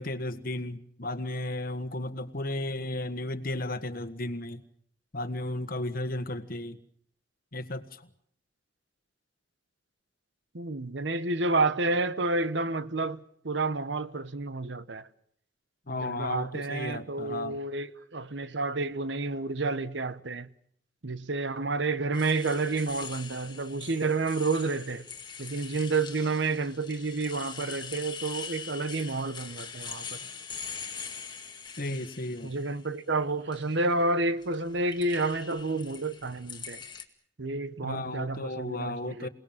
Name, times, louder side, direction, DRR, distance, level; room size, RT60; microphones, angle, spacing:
voice 1, 0.0-4.6 5.1-6.8 7.5-8.1 15.9-17.6 31.8-32.5 37.8-39.3, left 1 dB, 55° left, 1.6 m, -34 dB
voice 2, 10.5-15.1 15.9-20.5 21.0-25.0 25.4-30.1 32.4-36.8 37.4-39.3, right 3 dB, 70° right, 1.1 m, -30 dB
sound 1, 22.1-32.7 33.3-33.9 34.4-37.0, left 6 dB, 25° left, 2.1 m, -43 dB
28.0 x 19.0 x 7.4 m
head